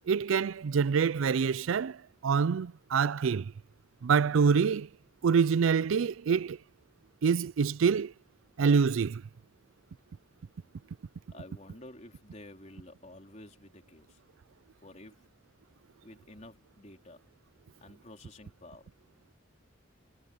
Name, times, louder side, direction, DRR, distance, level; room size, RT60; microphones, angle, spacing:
voice 1, 0.1-3.5 4.0-4.9 5.2-6.6 7.2-8.1 8.6-9.2, right 6 dB, 80° right, 0.4 m, -26 dB
voice 2, 11.3-14.2 14.8-15.2 16.0-17.2 17.8-18.9, left 1 dB, 35° left, 3.9 m, -51 dB
head